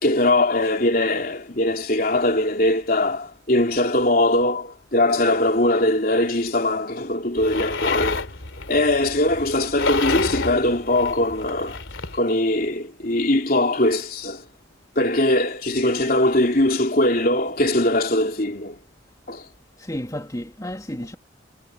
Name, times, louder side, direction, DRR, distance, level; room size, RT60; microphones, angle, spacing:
voice 1, 0.0-8.3 8.7-11.8 12.1-14.4 15.0-18.8 19.3-19.5, left 1 dB, 45° left, 3.5 m, -21 dB
sound 1, 7.4-12.2, left 4 dB, 80° left, 3.1 m, -29 dB
voice 2, 19.8-21.2, equal, 20° left, 2.8 m, -32 dB
head